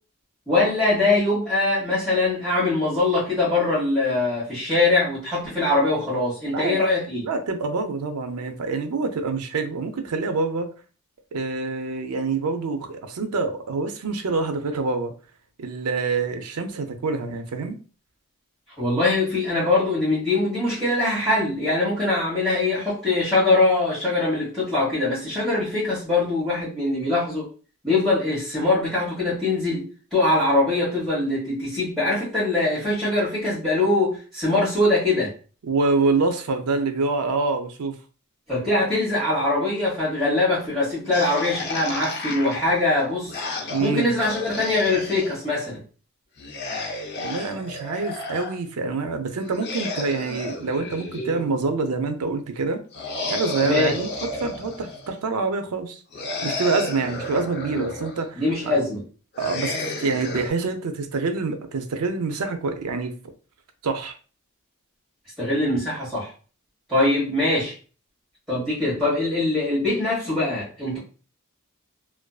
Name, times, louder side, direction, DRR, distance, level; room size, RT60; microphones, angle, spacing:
voice 1, 0.5-7.3 18.8-27.5 27.8-35.3 38.5-43.4 43.8-45.8 53.6-54.0 57.7-57.8 58.3-59.0 65.4-66.3 66.9-67.7 68.5-71.0, left 2 dB, ahead, -12 dB, 1.1 m, -22 dB
voice 2, 6.5-6.9 7.2-10.7 11.3-15.1 15.6-17.8 35.7-37.9 43.7-44.1 47.2-52.8 53.3-54.1 54.4-56.0 56.4-58.8 59.4-63.1 63.8-64.1, right 3 dB, 85° right, 7 dB, 0.4 m, -26 dB
sound 1, 41.1-45.4 46.4-48.6 49.4-51.8 52.9-55.1 56.1-58.3 59.3-60.5, left 2 dB, 50° left, 0.6 m, -32 dB
2.5 x 2.2 x 2.3 m, 0.37 s
head